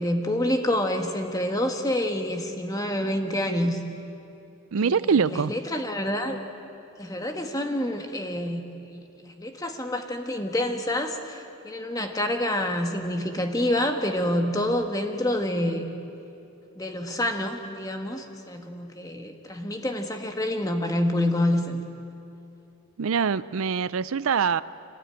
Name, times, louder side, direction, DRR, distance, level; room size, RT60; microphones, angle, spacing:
voice 1, 0.0-3.8 4.8-5.0 5.3-6.4 7.0-8.6 8.9-11.4 11.6-15.9 16.8-21.8, left 1 dB, 15° left, 1.4 m, -27 dB
voice 2, 4.7-5.5 23.0-24.6, right 6 dB, 80° right, 0.5 m, -24 dB
25.5 x 18.0 x 9.0 m
head